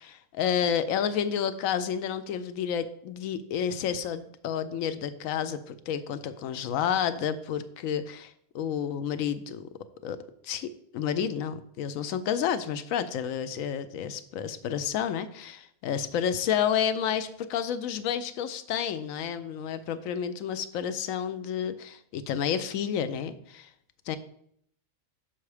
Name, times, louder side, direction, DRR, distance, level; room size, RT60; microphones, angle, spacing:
voice 1, 0.0-9.7 10.0-10.2 10.4-23.7 24.1-24.2, left 8 dB, 85° left, 11 dB, 1.0 m, -30 dB
6.0 x 5.8 x 4.8 m, 0.70 s
omnidirectional pair, 1.4 m